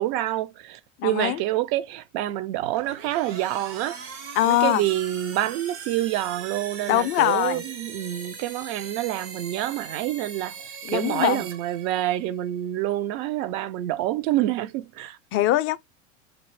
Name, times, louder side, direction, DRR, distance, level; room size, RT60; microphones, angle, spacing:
voice 1, 0.0-4.0 4.4-10.6 10.9-15.2, right 14 dB, 45° right, 0.6 m, -27 dB
voice 2, 1.0-1.4 4.4-4.8 6.9-7.7 10.8-11.5 15.3-15.8, left 15 dB, 35° left, 0.4 m, -22 dB
sound 1, 2.6-12.3, right 6 dB, 70° right, 1.8 m, -40 dB
4.0 x 2.5 x 3.1 m
hypercardioid pair, 90°, 38 cm